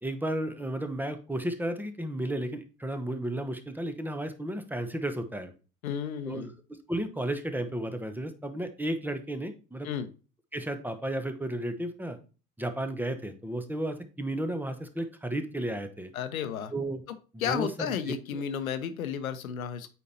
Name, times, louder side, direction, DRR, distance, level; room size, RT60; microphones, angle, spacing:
voice 1, 0.0-5.5 6.2-6.5 6.9-9.9 10.5-12.2 12.6-16.1 16.7-17.0 17.3-18.1, right 1 dB, 5° right, 9 dB, 0.9 m, -33 dB
voice 2, 5.8-6.5 9.8-10.1 16.1-16.7 17.4-19.9, left 8 dB, 80° left, 11 dB, 0.7 m, -32 dB
8.3 x 4.5 x 2.7 m, 0.34 s
hypercardioid pair, 70°, 41 cm